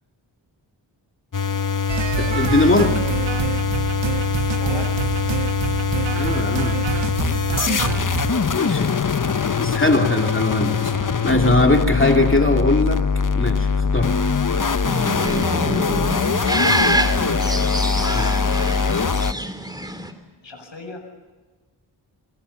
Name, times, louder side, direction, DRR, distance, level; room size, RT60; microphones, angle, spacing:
sound 1, 1.3-19.3, left 5 dB, 45° left, 0.9 m, -22 dB
sound 2, 1.9-8.5, right 8 dB, 70° right, 0.8 m, -27 dB
voice 1, 2.2-3.0 6.2-6.8 8.6-8.9 9.6-13.0 13.3-14.1 18.1-18.4, left 2 dB, 25° left, 2 dB, 2.6 m, -20 dB
voice 2, 4.5-5.0 16.5-17.3 20.4-21.1, left 1 dB, 70° left, 4 dB, 7.4 m, -33 dB
sound 3, 14.8-20.1, right 1 dB, 10° right, 3.1 m, -25 dB
23.5 x 23.5 x 7.1 m, 1.3 s
wide cardioid pair, 65°, 46 cm